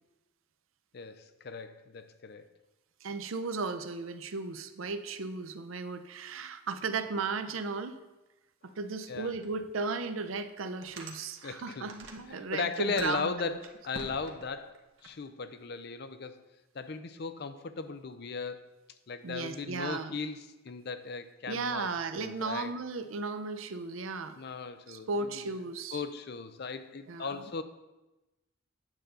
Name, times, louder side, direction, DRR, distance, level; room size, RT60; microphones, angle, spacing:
voice 1, 0.9-2.5 9.1-9.4 11.4-11.9 12.3-16.4 16.7-18.7 19.1-22.7 24.4-25.5 25.9-27.6, left 4 dB, 55° left, 10 dB, 0.5 m, -37 dB
voice 2, 3.0-8.0 8.6-13.6 19.2-20.1 21.5-24.4 24.9-26.0 27.1-27.3, right 4 dB, 90° right, 10 dB, 0.6 m, -35 dB
sound 1, 9.4-9.5 10.0-10.1 10.6-12.4 12.7-15.1, right 3 dB, 70° right, 1.0 m, -48 dB
9.0 x 3.8 x 6.7 m, 1.0 s
head